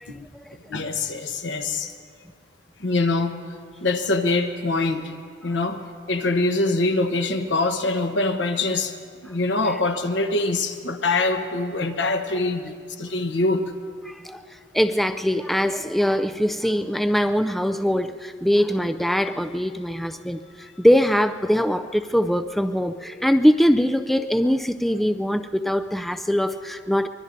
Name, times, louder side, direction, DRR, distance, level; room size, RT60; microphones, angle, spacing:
voice 1, 0.7-1.9 2.8-3.4 3.8-5.1 5.4-5.8 6.1-8.9 9.2-12.7 13.0-13.6, left 2 dB, 75° left, 7 dB, 1.1 m, -24 dB
voice 2, 14.1-14.4 14.7-27.1, equal, ahead, 8 dB, 0.3 m, -22 dB
24.5 x 22.0 x 2.7 m, 2.2 s
head